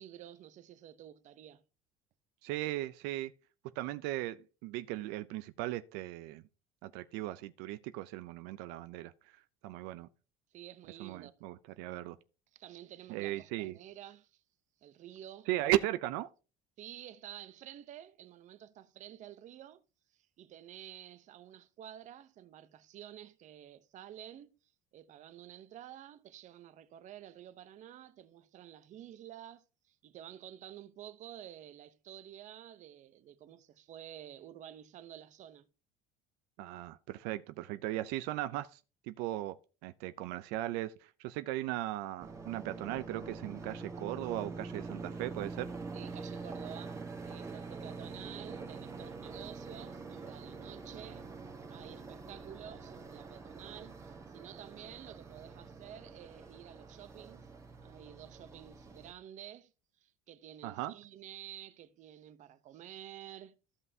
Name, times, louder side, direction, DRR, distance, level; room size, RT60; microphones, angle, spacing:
voice 1, 0.0-1.6 10.5-11.3 12.5-14.4 14.8-15.5 16.8-19.8 20.1-24.6 24.9-35.7 45.9-51.3 51.7-57.4 57.8-59.7 60.0-63.6, right 11 dB, 45° right, 0.7 m, -51 dB
voice 2, 2.4-3.3 3.6-6.4 6.8-9.1 9.6-10.1 11.0-12.2 13.1-13.8 15.5-16.3 36.6-38.8 39.0-45.7 60.6-60.9, right 15 dB, 85° right, 0.5 m, -37 dB
sound 1, 42.2-59.1, right 4 dB, 15° right, 1.4 m, -45 dB
14.0 x 5.5 x 2.7 m
cardioid pair, 130°, 17 cm